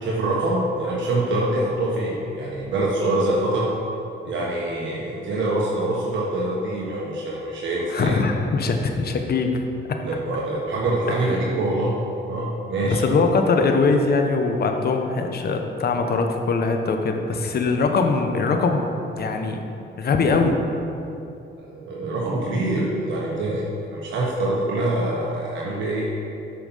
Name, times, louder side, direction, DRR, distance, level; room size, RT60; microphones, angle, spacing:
voice 1, 0.0-3.7 4.2-8.2 10.0-12.0 12.3-13.0 21.6-26.1, right 1 dB, 70° right, -4 dB, 1.3 m, -25 dB
voice 2, 7.9-9.6 12.8-19.6 20.0-20.6, left 4 dB, 50° left, 4 dB, 1.0 m, -22 dB
8.5 x 5.8 x 5.6 m, 2.8 s
cardioid pair, 90°, 20 cm